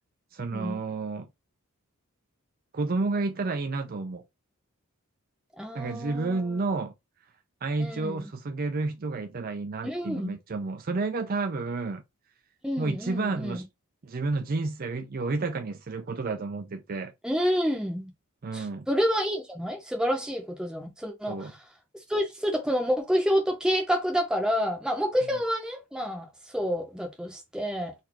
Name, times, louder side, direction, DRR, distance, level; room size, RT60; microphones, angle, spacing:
voice 1, 0.3-1.3 2.7-4.2 5.7-6.9 7.6-12.0 12.8-13.6 14.0-17.1 18.4-18.9 21.3-21.5, right 3 dB, 40° right, 0.5 m, -30 dB
voice 2, 5.6-6.6 7.8-8.3 9.8-10.4 12.6-13.6 17.2-18.1 18.5-21.5 22.1-26.3 26.5-27.9, equal, 5° right, 0.8 m, -28 dB
4.1 x 2.7 x 4.4 m
head